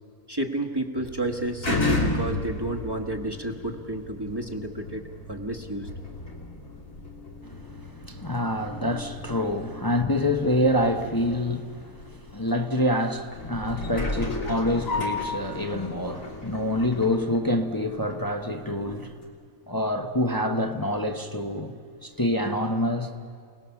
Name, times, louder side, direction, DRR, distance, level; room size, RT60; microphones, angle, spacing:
voice 1, 0.3-5.9, right 1 dB, 15° right, 1.4 m, -31 dB
sound 1, 1.0-18.3 18.8-19.0, left 2 dB, 65° left, 3.4 m, -34 dB
voice 2, 7.4-19.2 19.7-21.7 22.0-23.1, left 1 dB, 15° left, 0.9 m, -27 dB
29.0 x 19.0 x 7.1 m
omnidirectional pair, 1.5 m